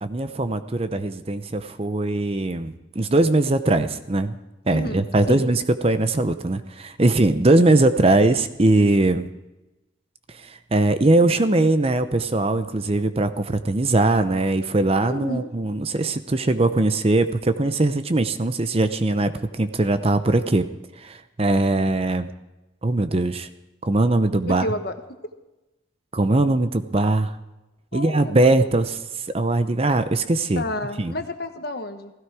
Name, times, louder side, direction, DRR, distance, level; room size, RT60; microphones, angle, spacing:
voice 1, 0.0-4.4 4.7-9.3 10.4-20.6 21.0-22.3 22.8-23.5 23.8-24.7 26.1-27.3 27.9-29.0 29.3-30.6 31.0-31.1, right 2 dB, 30° right, 10 dB, 0.6 m, -21 dB
voice 2, 4.7-5.5 15.0-15.5 24.6-24.9 27.9-28.7 30.5-32.1, left 1 dB, 55° left, 7 dB, 1.3 m, -31 dB
16.5 x 16.0 x 4.8 m, 1.0 s
head